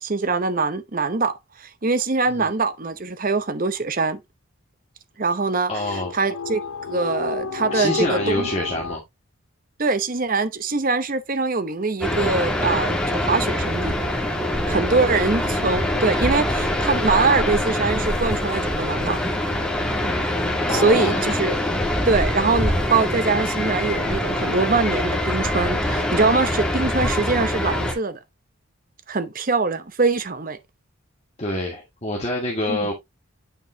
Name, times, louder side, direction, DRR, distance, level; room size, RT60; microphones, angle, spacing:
voice 1, 0.0-4.2 5.2-5.7 6.1-6.6 6.9-8.5 9.8-14.0 14.7-19.2 20.7-21.6 22.0-28.2 29.1-30.6 32.7-32.8, right 4 dB, 40° right, 0.8 m, -23 dB
sound 1, 5.7-9.0, left 4 dB, 90° left, 0.6 m, -30 dB
voice 2, 5.7-6.1 7.7-9.0 14.9-15.1 20.7-21.2 31.4-32.9, left 1 dB, 30° left, 1.8 m, -26 dB
sound 2, 12.0-27.9, left 1 dB, 5° left, 1.9 m, -24 dB
9.0 x 5.3 x 2.8 m
head